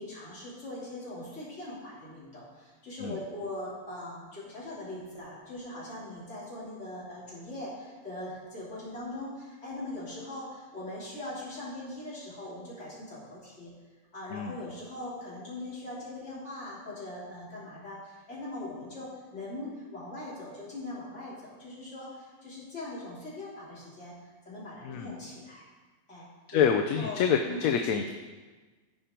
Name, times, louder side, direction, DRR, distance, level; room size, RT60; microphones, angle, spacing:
voice 1, 0.0-13.7 14.1-24.1 24.4-25.6 26.1-26.6 27.0-27.2 27.5-27.7, left 1 dB, 50° left, -8 dB, 3.6 m, -41 dB
voice 2, 26.5-28.1, left 7 dB, 75° left, 5 dB, 1.0 m, -27 dB
14.0 x 5.1 x 4.5 m, 1.3 s
omnidirectional pair, 1.5 m